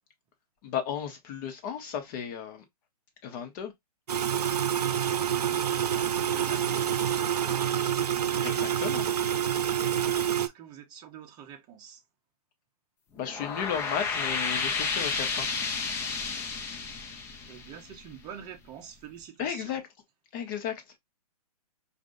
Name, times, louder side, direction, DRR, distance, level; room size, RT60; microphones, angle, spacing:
voice 1, 0.6-2.6 3.2-3.7 8.4-9.1 13.2-15.5 19.4-19.8 20.3-20.8, left 8 dB, 30° left, 1.1 m, -34 dB
sound 1, 4.1-10.5, right 9 dB, 80° right, 0.6 m, -27 dB
voice 2, 5.5-6.9 10.4-12.0 17.5-19.8, right 8 dB, 20° right, 0.8 m, -46 dB
sound 2, 13.2-18.4, left 5 dB, 10° left, 0.4 m, -32 dB
4.9 x 2.6 x 2.6 m
hypercardioid pair, 140°, 20 cm